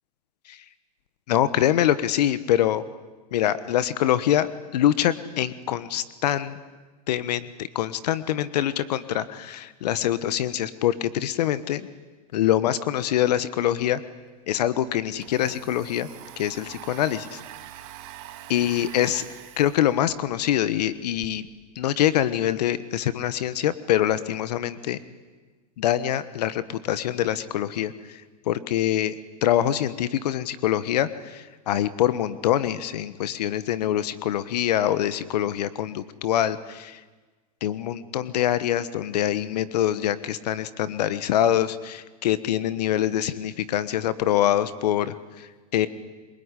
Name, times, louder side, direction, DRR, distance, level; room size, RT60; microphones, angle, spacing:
voice 1, 1.3-2.8 3.3-6.6 7.1-11.9 12.3-14.0 14.5-16.1 16.4-17.4 18.5-19.2 19.6-21.5 21.7-25.0 25.8-28.2 28.5-29.1 29.4-37.0 37.6-45.9, left 11 dB, 75° left, 15 dB, 1.3 m, -24 dB
Domestic sounds home sounds, 14.8-21.3, right 13 dB, 50° right, 2.7 m, -45 dB
24.0 x 22.5 x 9.9 m, 1.3 s
supercardioid pair, 130°, 21 cm